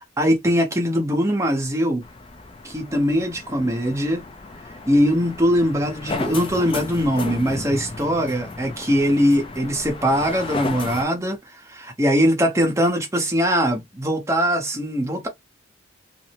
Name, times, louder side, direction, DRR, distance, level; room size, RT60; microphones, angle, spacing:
voice 1, 0.2-2.0 2.6-4.3 4.9-15.3, equal, 15° right, 0.7 m, -21 dB
sound 1, 2.0-11.1, left 3 dB, 25° left, 0.4 m, -34 dB
2.5 x 2.0 x 2.8 m
head